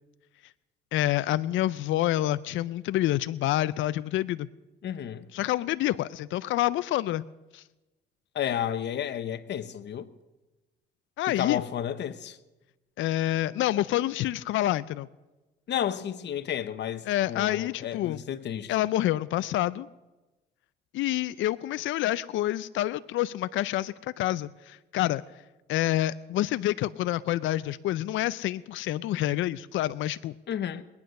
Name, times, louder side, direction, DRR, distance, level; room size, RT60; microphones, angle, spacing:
voice 1, 0.9-4.5 5.3-7.2 7.5-7.6 11.2-11.6 13.0-15.1 17.1-18.2 18.7-19.9 20.9-25.2 25.7-30.3, left 14 dB, 75° left, 0.4 m, -27 dB
voice 2, 4.8-5.3 8.3-10.1 11.3-12.4 15.7-18.7 30.5-30.8, left 9 dB, 60° left, 0.9 m, -32 dB
20.5 x 9.5 x 6.4 m
cardioid pair, 90°, 20 cm